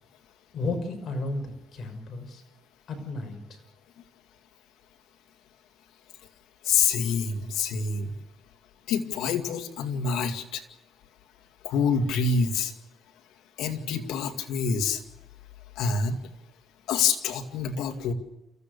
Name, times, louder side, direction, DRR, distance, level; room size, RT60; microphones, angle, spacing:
voice 1, 0.5-2.4 2.9-3.6, left 2 dB, 55° left, 5 dB, 6.0 m, -33 dB
voice 2, 6.6-8.1 8.9-10.6 11.6-12.7 13.6-15.0 15.8-16.2 16.9-18.1, left 5 dB, 90° left, 6 dB, 2.2 m, -26 dB
28.5 x 15.0 x 6.8 m, 0.98 s
cardioid pair, 90°, 0 cm